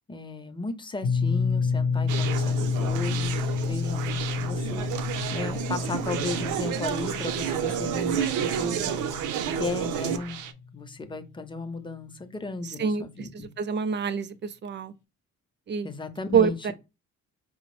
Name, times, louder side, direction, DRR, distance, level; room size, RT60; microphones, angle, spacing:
voice 1, 0.1-4.9 5.3-8.9 9.5-10.4 10.7-13.5 15.8-16.7, left 3 dB, 15° left, 0.6 m, -35 dB
sound 1, 1.0-10.9, left 5 dB, 80° left, 0.7 m, -30 dB
Conversation, 2.1-10.5, right 9 dB, 85° right, 0.6 m, -30 dB
voice 2, 13.3-14.3 14.6-14.9 15.7-15.9 16.3-16.7, right 6 dB, 40° right, 0.5 m, -25 dB
4.4 x 2.0 x 3.0 m
cardioid pair, 90°, 30 cm